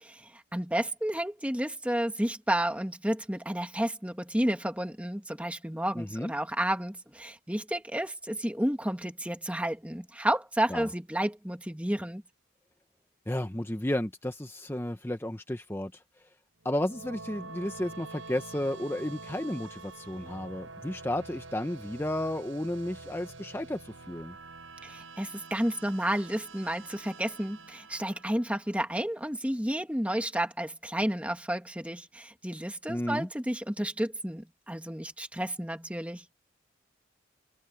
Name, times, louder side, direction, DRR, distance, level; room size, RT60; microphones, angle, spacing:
voice 1, 0.0-12.2 24.8-36.2, right 1 dB, 5° right, 2.0 m, -31 dB
voice 2, 5.9-6.3 10.7-10.9 13.3-16.0 16.6-24.4 32.9-33.3, left 1 dB, 10° left, 0.7 m, -33 dB
sound 1, 16.6-29.0, right 3 dB, 80° right, 7.0 m, -47 dB
head